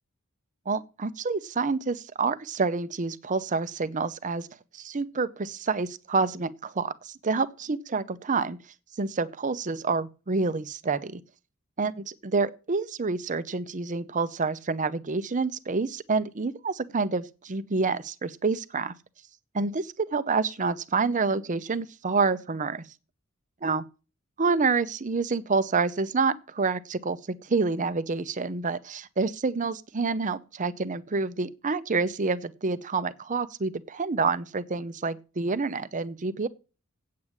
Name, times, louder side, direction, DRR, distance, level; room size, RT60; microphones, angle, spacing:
voice 1, 0.7-4.5 4.7-8.6 9.0-11.2 11.8-18.9 19.5-22.9 23.6-23.8 24.4-36.5, right 4 dB, 40° right, 0.7 m, -28 dB
8.5 x 7.2 x 8.1 m
head